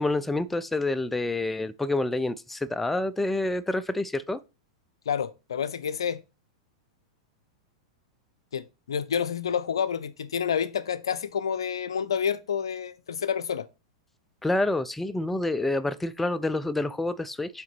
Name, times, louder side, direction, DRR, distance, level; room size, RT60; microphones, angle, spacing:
voice 1, 0.0-4.4 14.4-17.6, left 2 dB, 5° left, 0.4 m, -28 dB
voice 2, 5.1-6.2 8.5-13.7, left 7 dB, 85° left, 0.5 m, -29 dB
5.8 x 3.8 x 4.4 m
hypercardioid pair, 115°, 3 cm